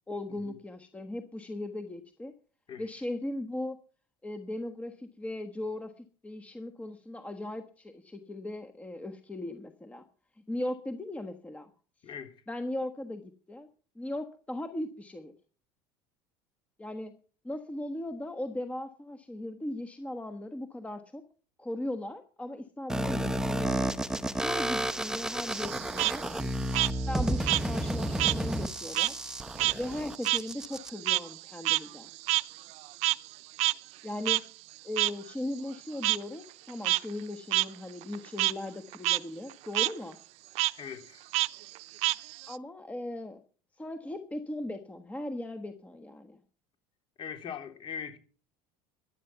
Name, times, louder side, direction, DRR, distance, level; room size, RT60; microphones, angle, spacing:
voice 1, 0.1-2.3 2.8-3.8 4.2-10.0 10.5-11.7 12.5-13.7 13.9-15.3 16.8-17.2 17.4-21.2 21.6-26.3 27.1-29.2 29.7-32.1 34.0-34.5 34.8-40.2 42.5-43.4 43.8-46.4, left 1 dB, 10° left, 1.3 m, -38 dB
voice 2, 12.0-12.3 40.8-41.2 47.2-48.2, left 7 dB, 45° left, 3.4 m, -40 dB
sound 1, 22.9-30.9, right 1 dB, 5° right, 1.0 m, -32 dB
Frog, 25.5-28.4 28.7-33.3 33.6-33.7 34.3-34.4 35.0-35.1 36.0-36.2 36.7-37.0 37.5-37.7 38.0-38.5 38.9-39.2 39.5-39.9 40.6-40.7 41.3-42.6, right 20 dB, 60° right, 0.6 m, -28 dB
14.0 x 11.0 x 5.8 m
supercardioid pair, 115°, 12 cm